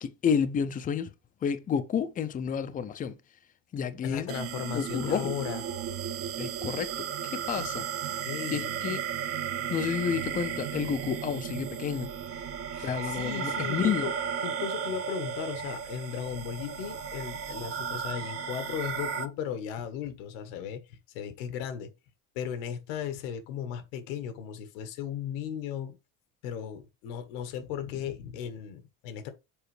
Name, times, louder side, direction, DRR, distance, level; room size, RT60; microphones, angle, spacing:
voice 1, 0.0-1.1 1.4-3.2 3.7-4.3 4.7-5.3 6.4-7.8 8.5-9.0 9.7-12.2 12.8-14.1, left 7 dB, 20° left, 0.6 m, -30 dB
voice 2, 4.0-5.6 8.1-8.8 12.7-14.1 14.4-21.9 22.3-26.0 26.4-29.3, left 8 dB, 85° left, 1.5 m, -36 dB
sound 1, 4.3-19.3, right 8 dB, 35° right, 0.8 m, -34 dB
7.1 x 4.3 x 3.3 m
cardioid pair, 135°, 39 cm